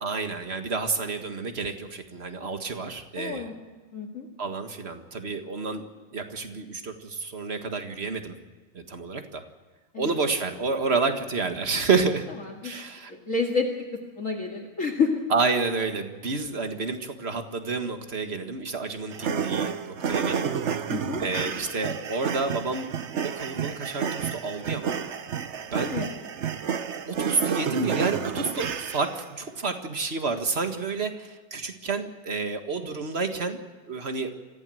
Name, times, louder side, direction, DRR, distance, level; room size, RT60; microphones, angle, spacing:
voice 1, 0.0-3.5 4.4-5.8 6.1-8.3 8.7-9.4 10.0-12.2 12.6-13.1 15.3-20.6 21.2-22.9 23.2-25.0 25.7-26.0 27.1-33.6 33.9-34.3, right 4 dB, 30° right, 6 dB, 1.7 m, -29 dB
voice 2, 3.2-3.5 3.9-4.3 9.9-10.1 12.6-12.7 13.1-13.7 14.2-15.2 20.9-21.2 25.9-26.1, left 4 dB, 40° left, 1 dB, 2.3 m, -28 dB
sound 1, 19.1-29.3, right 7 dB, 55° right, 0.8 m, -30 dB
24.5 x 15.5 x 7.8 m, 1.3 s
omnidirectional pair, 2.3 m